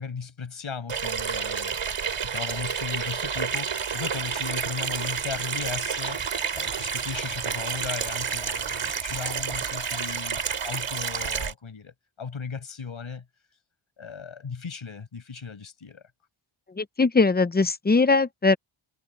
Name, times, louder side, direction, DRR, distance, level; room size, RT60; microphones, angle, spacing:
voice 1, 0.0-1.8 2.2-13.2 14.0-16.0, left 5 dB, 70° left, 6.7 m, -37 dB
Water tap faucet / Sink (filling or washing), 0.9-11.5, right 6 dB, 90° right, 4.3 m, -30 dB
voice 2, 16.8-18.6, left 3 dB, 20° left, 0.7 m, -21 dB
wide cardioid pair, 95°, 50 cm